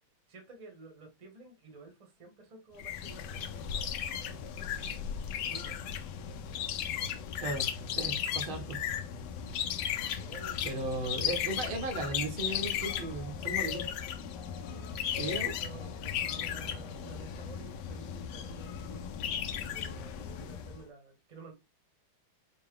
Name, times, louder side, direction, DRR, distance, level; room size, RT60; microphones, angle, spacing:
voice 1, 0.3-3.9 4.2-4.9 5.4-5.8 10.1-11.1 13.5-13.9 14.5-21.5, right 3 dB, 25° right, 1.0 m, -52 dB
sound 1, 2.8-20.8, left 9 dB, 70° left, 1.0 m, -36 dB
voice 2, 7.4-8.8 10.7-13.8 15.1-15.5, right 2 dB, 80° right, 1.9 m, -36 dB
5.3 x 2.2 x 3.6 m
omnidirectional pair, 2.2 m